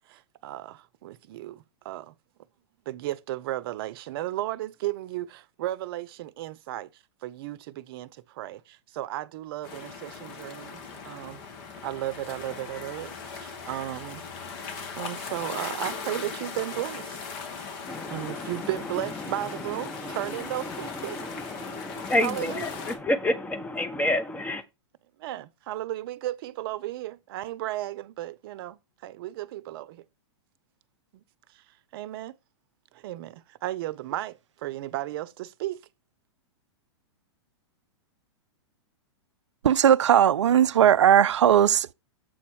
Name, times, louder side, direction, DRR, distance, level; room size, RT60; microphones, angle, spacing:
voice 1, 0.4-1.6 1.8-2.1 2.9-6.9 7.2-8.1 8.4-8.6 8.9-11.4 11.8-13.1 13.4-14.2 15.0-17.2 18.1-21.2 22.2-22.6 25.2-30.0 31.9-32.3 33.0-35.8, right 14 dB, 55° right, 0.7 m, -34 dB
sound 1, 9.6-23.0, left 5 dB, 50° left, 1.9 m, -39 dB
voice 2, 17.9-24.6, left 1 dB, 10° left, 1.0 m, -31 dB
voice 3, 39.6-41.9, right 10 dB, 85° right, 0.4 m, -18 dB
7.8 x 4.2 x 6.2 m
hypercardioid pair, 115°, 15 cm